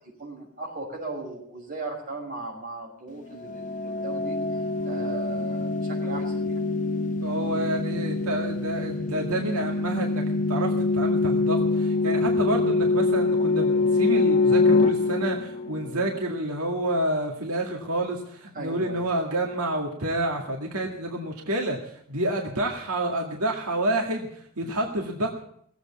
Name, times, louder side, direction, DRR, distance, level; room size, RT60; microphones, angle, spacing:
voice 1, 0.2-4.4 4.8-6.7 18.5-19.1, right 2 dB, 40° right, -2 dB, 5.9 m, -37 dB
sound 1, 3.4-16.1, left 3 dB, 35° left, 0.6 m, -25 dB
voice 2, 7.2-25.3, right 1 dB, 90° right, 1 dB, 2.1 m, -29 dB
18.5 x 8.3 x 8.2 m, 0.68 s
head